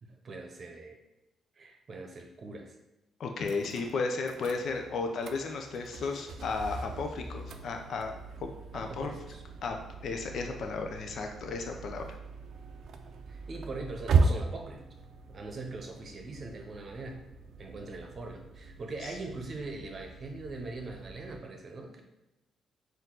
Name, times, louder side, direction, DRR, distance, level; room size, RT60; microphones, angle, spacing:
voice 1, 0.0-1.0 1.6-2.8 8.7-9.4 13.3-14.8 15.3-17.2 17.6-22.0, right 3 dB, 45° right, 3 dB, 0.8 m, -42 dB
voice 2, 3.2-8.1 8.4-8.5 8.7-9.1 9.6-9.8 10.0-12.2, left 4 dB, 60° left, 4 dB, 0.5 m, -34 dB
sound 1, 3.4-21.4, right 4 dB, 65° right, 0.4 m, -37 dB
4.4 x 2.6 x 3.8 m, 0.98 s
cardioid pair, 90°, 0 cm